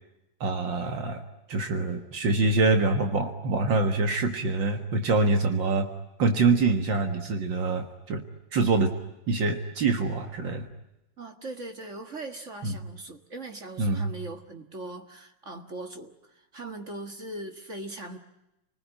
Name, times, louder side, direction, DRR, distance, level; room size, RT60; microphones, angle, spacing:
voice 1, 0.4-1.2 1.5-5.9 6.2-8.2 8.5-8.9 9.3-10.7 12.6-12.7 13.8-14.1, right 3 dB, 75° right, 5 dB, 2.3 m, -25 dB
voice 2, 11.2-18.2, right 2 dB, 40° right, 5 dB, 2.0 m, -40 dB
29.5 x 20.5 x 10.0 m, 0.92 s
omnidirectional pair, 2.1 m